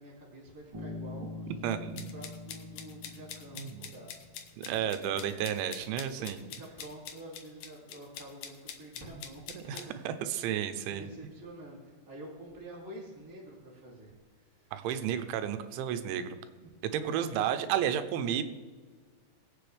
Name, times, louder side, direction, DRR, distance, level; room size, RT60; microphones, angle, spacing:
voice 1, 0.0-5.6 6.0-14.9 16.6-17.4, right 1 dB, 5° right, -4 dB, 1.6 m, -49 dB
Bass guitar, 0.7-4.5, left 3 dB, 35° right, 2.3 m, -44 dB
voice 2, 1.6-2.1 3.6-3.9 4.6-6.4 9.5-9.8 10.1-11.1 14.7-16.4 16.8-18.4, right 9 dB, 85° right, 10 dB, 3.1 m, -32 dB
sound 1, 2.0-9.9, left 8 dB, 80° left, 1.9 m, -45 dB
21.5 x 7.8 x 3.4 m, 1.5 s
omnidirectional pair, 5.3 m